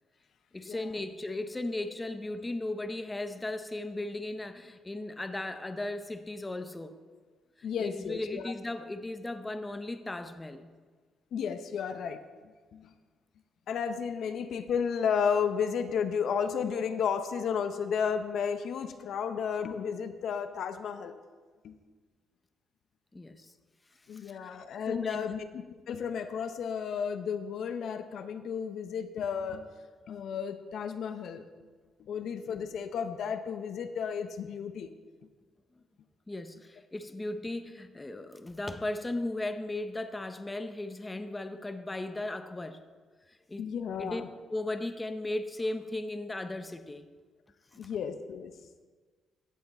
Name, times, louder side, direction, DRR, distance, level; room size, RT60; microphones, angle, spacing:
voice 1, 0.5-7.0 7.6-10.7 19.1-19.3 23.1-23.5 24.1-24.5 24.9-25.4 36.3-42.8 43.3-43.7 44.0-44.2 44.5-47.1 47.7-47.8, left 2 dB, 15° left, 9 dB, 0.7 m, -36 dB
voice 2, 7.6-8.4 11.3-12.2 12.7-12.9 13.7-21.2 21.6-21.8 24.1-29.7 30.1-31.4 32.1-34.9 43.6-44.3 47.8-48.5, left 7 dB, 70° left, 9 dB, 0.7 m, -33 dB
15.5 x 5.7 x 4.2 m, 1.4 s
cardioid pair, 90°, 0 cm